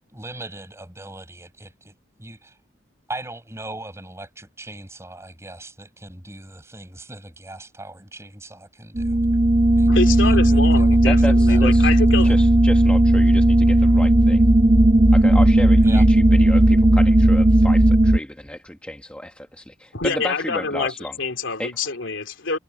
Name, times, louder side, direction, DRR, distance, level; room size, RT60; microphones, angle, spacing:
voice 1, 0.1-1.9 2.2-2.6 3.1-9.2 9.7-11.6 12.1-12.4 15.8-16.1, right 2 dB, 15° right, 6.9 m, -39 dB
sound 1, 9.0-18.2, right 1 dB, 35° right, 1.1 m, -15 dB
voice 2, 9.9-12.3 19.9-22.6, left 4 dB, 90° left, 2.9 m, -26 dB
voice 3, 11.0-11.9 12.2-14.5 15.1-21.1 21.6-21.8, left 1 dB, 5° left, 1.2 m, -32 dB
head